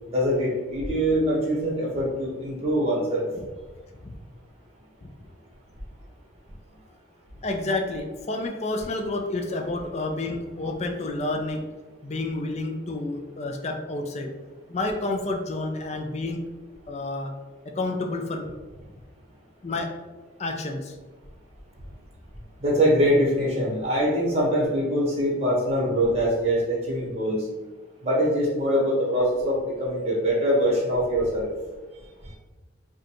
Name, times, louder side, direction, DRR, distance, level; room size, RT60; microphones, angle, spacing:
voice 1, 0.1-3.2 22.6-27.5 28.0-31.5, equal, 30° right, -5 dB, 1.2 m, -23 dB
voice 2, 7.4-11.6 12.0-14.3 14.7-16.4 16.9-17.3 17.8-18.5 19.6-19.9 20.4-21.0, left 2 dB, 35° left, 3 dB, 0.4 m, -29 dB
4.9 x 2.3 x 3.0 m, 1.3 s
head